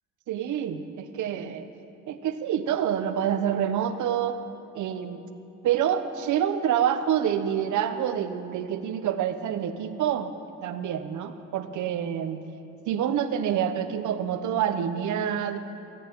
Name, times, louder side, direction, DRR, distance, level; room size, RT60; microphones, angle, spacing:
voice 1, 0.3-1.7 2.1-4.4 4.7-5.2 5.6-10.3 10.6-12.4 12.9-15.6, right 9 dB, 75° right, 10 dB, 0.9 m, -27 dB
22.5 x 9.2 x 4.6 m, 2.8 s
cardioid pair, 90°, 30 cm